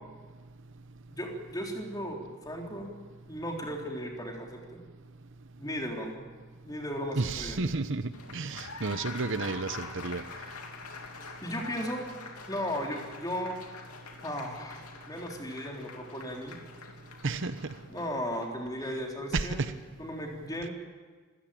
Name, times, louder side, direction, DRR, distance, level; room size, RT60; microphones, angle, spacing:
voice 1, 1.1-3.0 3.3-4.8 5.6-6.2 6.6-7.6 11.4-12.0 12.5-13.6 14.2-16.6 17.9-19.6 20.0-20.7, equal, 15° left, 1 dB, 3.5 m, -36 dB
voice 2, 7.2-8.0 8.3-10.2 17.2-17.6 19.3-19.7, right 3 dB, 60° right, 11 dB, 0.9 m, -31 dB
Applause, 8.1-18.5, left 4 dB, 90° left, 3.0 m, -45 dB
26.5 x 15.5 x 8.8 m, 1.4 s
head